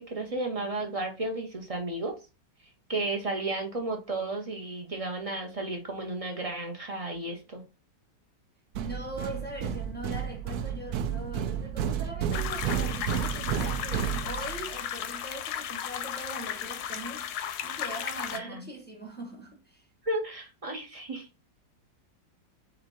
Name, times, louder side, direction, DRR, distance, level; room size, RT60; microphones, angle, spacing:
voice 1, 0.0-2.1 2.9-7.6 18.3-18.7 20.0-21.3, right 2 dB, 35° right, 0.6 m, -33 dB
voice 2, 8.8-19.8, right 1 dB, 15° left, 0.3 m, -41 dB
sound 1, 8.8-14.8, right 8 dB, 70° right, 1.0 m, -31 dB
sound 2, 12.3-18.4, left 9 dB, 70° left, 1.0 m, -35 dB
4.4 x 2.9 x 3.9 m
omnidirectional pair, 1.9 m